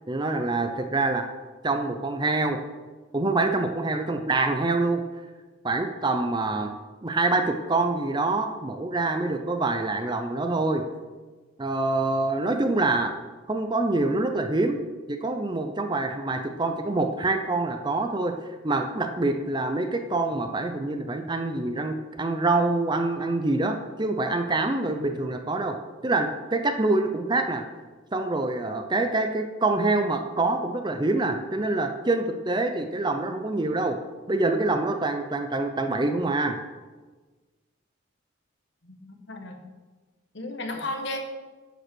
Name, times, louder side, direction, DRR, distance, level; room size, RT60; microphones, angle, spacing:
voice 1, 0.1-1.3 1.6-2.6 3.1-5.0 5.6-6.7 7.0-10.8 11.6-13.1 13.5-14.8 15.1-25.8 26.0-27.6 28.1-34.0 34.3-36.6, right 2 dB, 20° right, 6 dB, 0.6 m, -25 dB
voice 2, 38.8-39.6 40.3-41.2, left 2 dB, 55° left, 4 dB, 1.3 m, -34 dB
10.5 x 5.5 x 6.2 m, 1.3 s
head